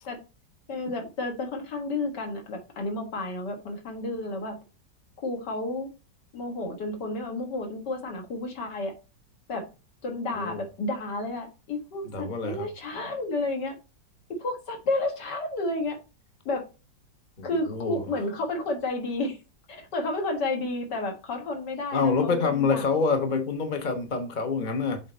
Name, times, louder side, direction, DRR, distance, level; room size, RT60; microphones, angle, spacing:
voice 1, 0.7-4.6 5.2-5.9 6.3-8.9 9.5-9.7 10.0-13.7 14.3-16.0 16.5-16.6 17.4-19.4 19.7-22.9 24.7-24.8, left 2 dB, 65° left, 2.2 m, -31 dB
voice 2, 12.1-12.7 17.4-18.0 21.9-25.0, left 4 dB, 30° left, 1.0 m, -26 dB
7.6 x 4.0 x 4.3 m
omnidirectional pair, 2.0 m